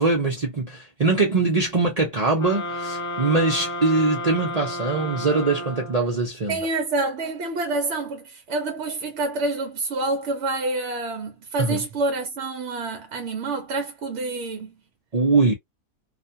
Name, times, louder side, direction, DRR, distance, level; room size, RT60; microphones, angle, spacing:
voice 1, 0.0-6.6 11.6-11.8 15.1-15.5, right 3 dB, 40° right, 0.5 m, -22 dB
sound 1, 2.4-6.3, left 1 dB, 60° left, 1.0 m, -32 dB
voice 2, 6.5-14.7, right 2 dB, 65° right, 0.8 m, -27 dB
2.5 x 2.3 x 2.6 m
omnidirectional pair, 1.5 m